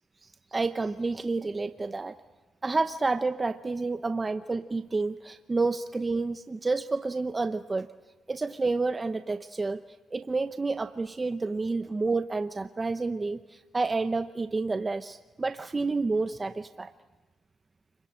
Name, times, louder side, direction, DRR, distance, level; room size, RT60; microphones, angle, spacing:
voice 1, 0.2-2.2 2.6-7.9 8.3-9.8 10.1-16.9, right 3 dB, 25° right, 9 dB, 0.8 m, -29 dB
30.0 x 22.5 x 8.8 m, 1.2 s
cardioid pair, 90°, 0 cm